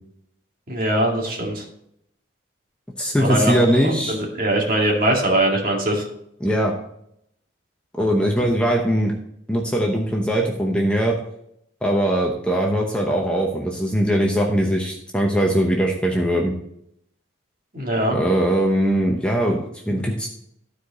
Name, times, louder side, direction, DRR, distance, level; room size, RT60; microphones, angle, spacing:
voice 1, 0.7-1.6 3.1-6.0 17.7-18.2, right 1 dB, 45° right, -1 dB, 2.2 m, -22 dB
voice 2, 3.0-4.2 6.4-6.7 7.9-9.1 9.5-11.1 11.8-16.5 18.1-20.3, equal, 5° left, 0 dB, 0.8 m, -21 dB
13.0 x 4.8 x 4.1 m, 0.75 s
head